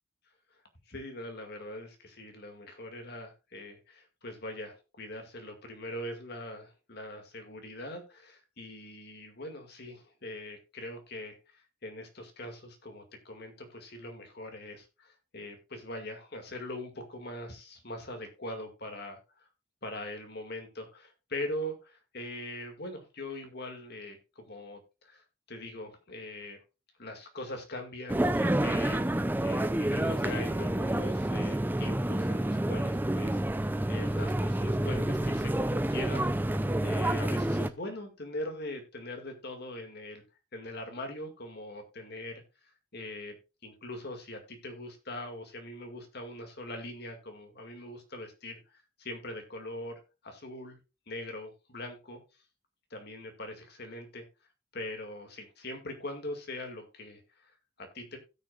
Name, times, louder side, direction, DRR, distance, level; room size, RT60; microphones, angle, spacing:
voice 1, 0.9-19.5 19.8-26.6 27.0-36.5 36.8-40.2 40.5-43.4 43.6-50.8 51.1-52.2 52.9-54.3 54.7-58.2, left 1 dB, 50° left, 5 dB, 2.1 m, -42 dB
sound 1, 28.1-37.7, right 1 dB, 10° right, 0.4 m, -29 dB
17.0 x 6.3 x 2.4 m, 0.27 s
head